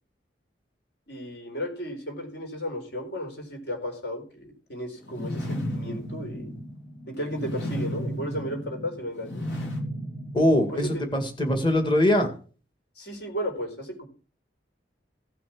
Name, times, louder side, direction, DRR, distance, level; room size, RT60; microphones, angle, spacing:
voice 1, 1.1-6.5 7.1-9.5 10.7-11.0 13.0-14.1, equal, 65° left, 3 dB, 4.2 m, -34 dB
sound 1, 5.0-11.1, equal, 80° left, 3.8 m, -34 dB
voice 2, 10.3-12.3, left 1 dB, 25° left, 5 dB, 2.0 m, -22 dB
16.0 x 6.0 x 6.1 m, 0.39 s
head